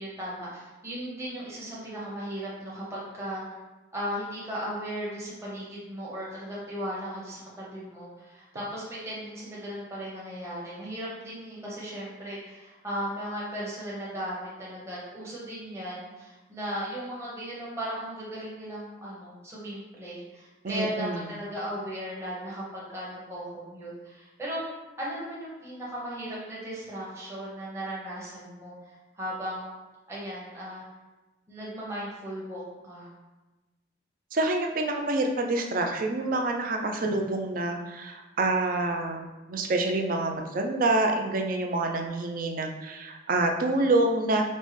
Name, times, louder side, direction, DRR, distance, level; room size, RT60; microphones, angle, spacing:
voice 1, 0.0-3.4 3.9-24.6 25.0-29.7 30.1-30.8 31.5-33.1 43.5-43.9, equal, 15° right, -7 dB, 0.9 m, -36 dB
voice 2, 20.6-21.2 34.3-44.5, right 2 dB, 45° right, 3 dB, 0.4 m, -27 dB
5.2 x 2.1 x 3.2 m, 1.1 s
head